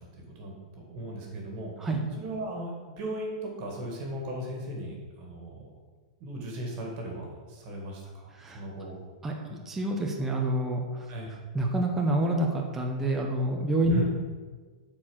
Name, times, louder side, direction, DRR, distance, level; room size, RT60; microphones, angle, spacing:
voice 1, 0.0-1.7 2.2-5.7 6.2-9.0 9.3-9.6 11.1-11.3 13.9-14.0, right 1 dB, 30° right, 0 dB, 2.0 m, -38 dB
voice 2, 9.2-11.1 11.5-14.0, right 1 dB, 10° right, 0 dB, 0.7 m, -27 dB
8.5 x 4.5 x 6.3 m, 1.4 s
supercardioid pair, 165°, 4 cm